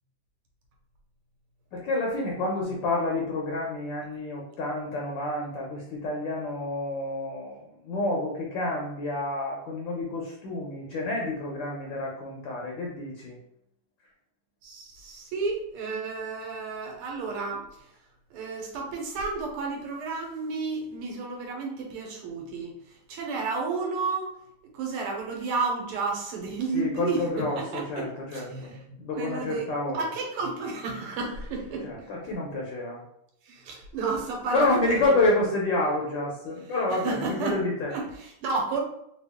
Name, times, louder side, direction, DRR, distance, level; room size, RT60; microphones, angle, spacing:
voice 1, 1.7-13.3 26.7-28.7 29.0-30.0 31.8-33.0 34.5-37.9, left 2 dB, 70° left, -2 dB, 1.2 m, -29 dB
voice 2, 14.6-17.6 18.3-24.3 24.7-27.5 27.7-28.8 29.2-31.9 33.5-35.0 36.9-37.6 37.9-38.8, right 4 dB, 90° right, 0 dB, 1.7 m, -32 dB
3.6 x 2.3 x 3.4 m, 0.76 s
omnidirectional pair, 2.4 m